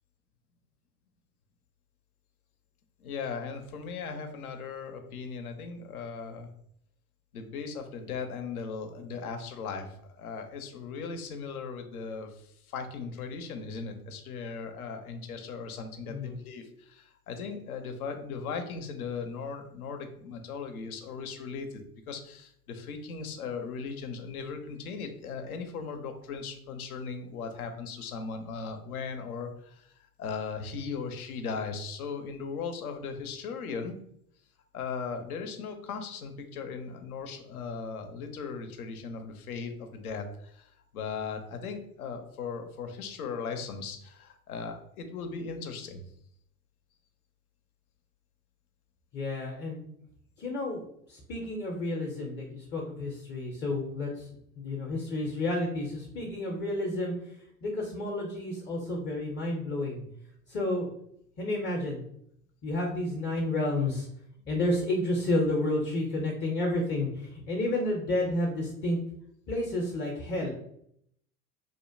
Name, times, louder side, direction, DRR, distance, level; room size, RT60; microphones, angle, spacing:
voice 1, 3.0-6.5 7.3-9.9 10.2-21.8 22.1-29.9 30.2-34.0 34.7-46.0, left 5 dB, 75° left, 6 dB, 0.6 m, -38 dB
voice 2, 49.1-49.8 50.4-50.8 51.1-54.3 54.6-60.0 60.5-60.9 61.4-62.0 62.6-64.1 64.5-69.0 69.5-70.5, left 1 dB, 25° left, 0 dB, 0.5 m, -31 dB
2.6 x 2.1 x 2.5 m, 0.70 s
figure-of-eight pair, 70°, 44 cm